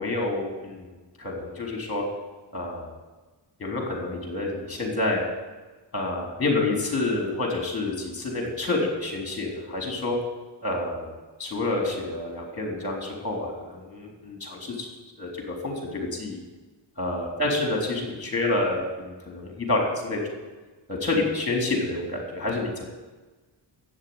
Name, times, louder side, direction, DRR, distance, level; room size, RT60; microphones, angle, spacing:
voice 1, 0.0-2.0 2.5-2.9 3.6-5.2 5.9-10.2 10.6-11.1 11.4-14.9 15.2-16.4 17.0-20.4 20.9-22.8, left 2 dB, 30° left, 1 dB, 3.6 m, -28 dB
13.0 x 8.1 x 9.6 m, 1.2 s
wide cardioid pair, 135°, 45 cm